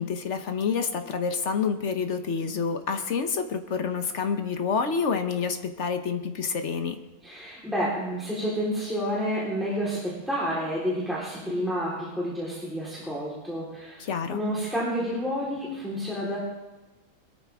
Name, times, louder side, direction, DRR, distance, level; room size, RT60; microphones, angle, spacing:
voice 1, 0.0-7.0 14.0-14.4, left 5 dB, 55° left, 8 dB, 1.2 m, -28 dB
voice 2, 7.2-14.0 14.3-16.4, equal, ahead, -8 dB, 3.8 m, -29 dB
22.0 x 13.0 x 3.6 m, 1.1 s
omnidirectional pair, 1.6 m